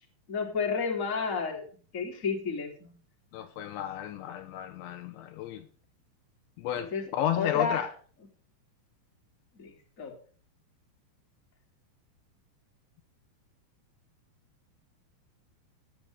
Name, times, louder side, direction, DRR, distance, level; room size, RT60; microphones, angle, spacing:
voice 1, 0.3-1.7 1.9-2.9 6.8-7.0 7.4-7.9 9.6-10.1, left 5 dB, 20° left, 2.9 m, -31 dB
voice 2, 3.3-5.7 6.6-7.9, left 11 dB, 75° left, 3.1 m, -32 dB
16.5 x 10.5 x 3.5 m
omnidirectional pair, 5.5 m